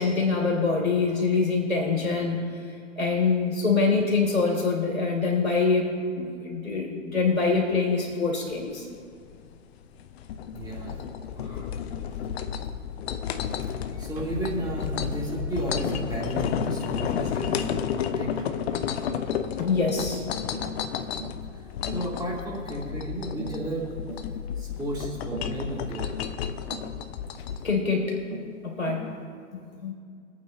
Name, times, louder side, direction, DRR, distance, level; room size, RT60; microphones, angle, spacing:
voice 1, 0.0-2.5 3.0-8.8 11.4-11.6 19.5-20.2 27.6-28.2 28.6-29.0 29.5-29.9, left 4 dB, 90° left, -2 dB, 3.1 m, -25 dB
sound 1, 8.5-27.7, left 8 dB, 50° left, 0.8 m, -32 dB
voice 2, 10.5-10.9 13.9-18.3 21.5-23.9 24.6-26.1, right 1 dB, 10° right, -5 dB, 3.3 m, -33 dB
Tap, 14.2-14.3 15.0-15.2 15.8-16.1 16.4-16.6 17.0-17.2 17.6-17.8 18.4-18.6 19.1-19.3 19.7-20.0 20.5-20.8 21.2-21.4 21.9-22.1 22.5-22.7 23.4-23.6 24.1-24.3 25.3-25.6 26.7-26.9 27.7-27.9 28.3-28.5 28.9-29.1, right 3 dB, 85° right, 3.4 m, -40 dB
24.0 x 8.8 x 2.9 m, 2.3 s
figure-of-eight pair, 105°, 40 cm